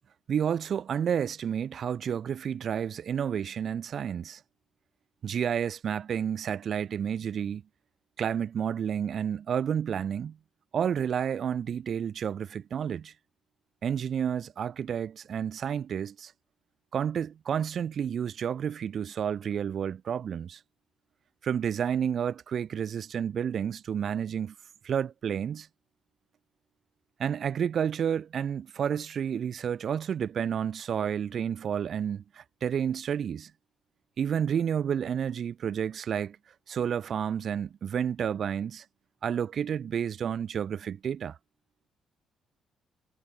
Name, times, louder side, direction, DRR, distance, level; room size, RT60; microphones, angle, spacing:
voice 1, 0.3-4.4 5.2-7.6 8.2-10.4 10.7-13.1 13.8-16.3 16.9-20.6 21.4-24.5 24.8-25.7 27.2-33.5 34.2-36.4 36.7-38.8 39.2-41.4, right 8 dB, 60° right, 0.5 m, -30 dB
supercardioid pair, 65°, 0 cm